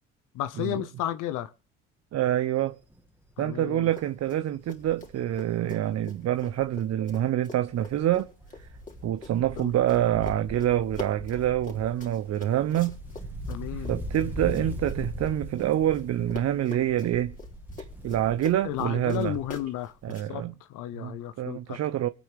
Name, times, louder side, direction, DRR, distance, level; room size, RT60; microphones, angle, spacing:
voice 1, 0.3-1.5 3.4-3.9 9.6-9.7 13.5-13.9 18.6-19.9 20.3-20.4 20.7-21.8, left 12 dB, 65° left, 0.9 m, -33 dB
voice 2, 2.1-2.8 3.4-8.3 8.6-8.7 9.0-13.0 13.7-17.4 18.0-19.4 20.0-20.5 21.0-22.1, right 12 dB, 50° right, 0.7 m, -26 dB
Wind, 2.7-3.0 3.4-3.5 3.7-7.3 7.6-19.8 20.0-20.1, equal, 5° right, 2.1 m, -40 dB
Run, 3.9-4.4 4.7-16.0 16.3-20.3, left 3 dB, 25° left, 3.5 m, -44 dB
25.0 x 9.1 x 3.4 m
hypercardioid pair, 60°, 34 cm